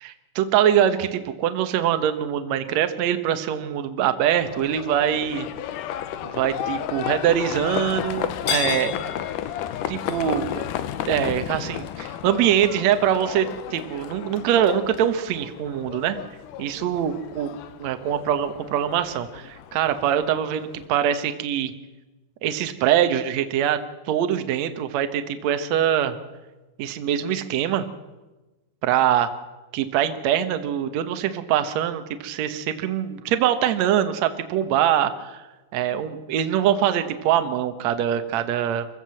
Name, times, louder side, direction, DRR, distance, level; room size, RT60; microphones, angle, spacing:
voice 1, 0.4-5.5 6.2-8.9 9.9-10.6 11.1-16.2 16.6-21.7 22.4-26.2 26.8-27.9 28.8-29.3 29.7-35.5 35.7-38.9, right 10 dB, 65° right, 9 dB, 1.9 m, -23 dB
Livestock farm animals working animals, 4.4-20.9, left 11 dB, 75° left, 2.0 m, -32 dB
25.5 x 15.0 x 7.7 m, 1.1 s
omnidirectional pair, 4.6 m